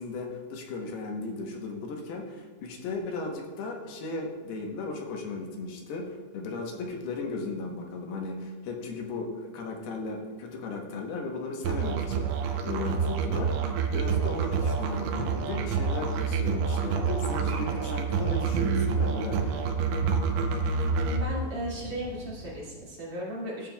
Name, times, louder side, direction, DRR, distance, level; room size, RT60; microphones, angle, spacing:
voice 1, 0.0-19.7, left 3 dB, 75° left, 1 dB, 2.8 m, -36 dB
Musical instrument, 11.6-21.2, right 5 dB, 85° right, 3.0 m, -28 dB
sound 1, 14.3-22.6, right 1 dB, 55° right, 1.8 m, -41 dB
voice 2, 21.1-23.7, equal, 40° right, -6 dB, 2.4 m, -36 dB
14.5 x 7.4 x 2.2 m, 1.3 s
omnidirectional pair, 5.0 m